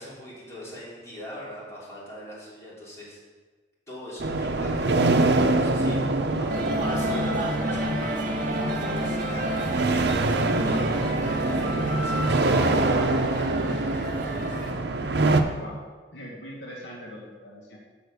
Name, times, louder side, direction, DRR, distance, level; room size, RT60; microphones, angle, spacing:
voice 1, 0.0-3.2 3.9-14.6, equal, 15° left, -8 dB, 3.3 m, -42 dB
sound 1, 4.2-15.4, right 2 dB, 65° right, 0.7 m, -25 dB
sound 2, 6.5-14.7, right 1 dB, 50° right, 1.4 m, -30 dB
voice 2, 15.5-15.8 16.1-17.8, equal, 80° left, -3 dB, 1.9 m, -41 dB
6.9 x 6.5 x 6.9 m, 1.4 s
head